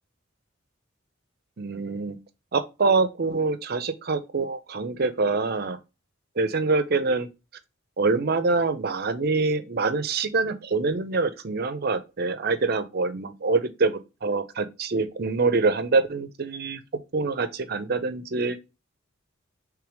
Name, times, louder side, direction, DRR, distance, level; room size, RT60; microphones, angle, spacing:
voice 1, 1.6-2.2 2.5-5.8 6.4-7.3 8.0-16.8 17.1-18.6, right 3 dB, 50° right, 0.6 m, -25 dB
3.4 x 3.3 x 4.6 m
head